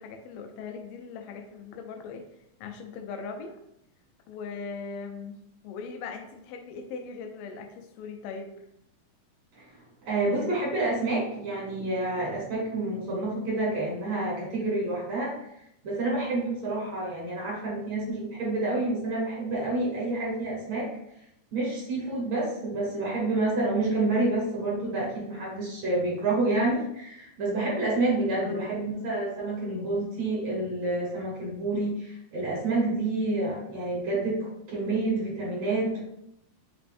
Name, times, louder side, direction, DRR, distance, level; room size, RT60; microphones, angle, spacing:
voice 1, 0.0-2.3 2.6-3.6 4.3-5.4 5.6-8.7 28.4-28.7, left 5 dB, 90° left, 5 dB, 2.5 m, -39 dB
voice 2, 9.5-15.3 15.8-20.9 21.5-36.0, right 2 dB, 50° right, -5 dB, 2.9 m, -28 dB
5.9 x 3.4 x 2.5 m, 0.78 s
omnidirectional pair, 4.1 m